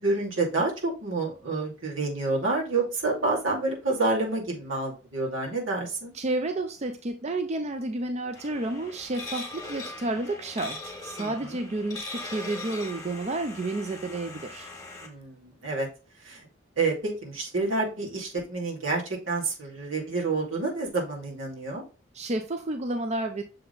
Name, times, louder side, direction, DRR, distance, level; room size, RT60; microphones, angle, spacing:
voice 1, 0.0-6.1 11.2-11.6 15.0-15.9 16.2-16.5 16.8-21.8, right 3 dB, 85° right, -3 dB, 2.5 m, -28 dB
voice 2, 6.1-14.7 22.1-23.4, right 2 dB, 35° right, 6 dB, 0.5 m, -31 dB
sound 1, 8.4-15.1, left 2 dB, 20° left, 1.7 m, -40 dB
6.8 x 3.7 x 4.0 m, 0.33 s
head